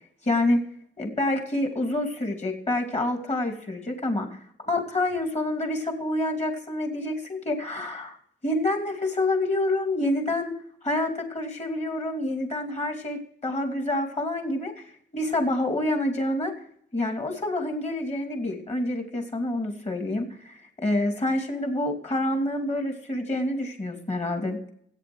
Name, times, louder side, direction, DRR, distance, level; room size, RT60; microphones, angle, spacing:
voice 1, 0.2-0.6 1.0-4.4 4.7-8.2 8.4-10.6 10.8-14.7 15.1-16.5 16.9-24.6, left 1 dB, 35° left, 3 dB, 2.7 m, -27 dB
15.5 x 8.9 x 6.2 m, 0.66 s
wide cardioid pair, 120°, 20 cm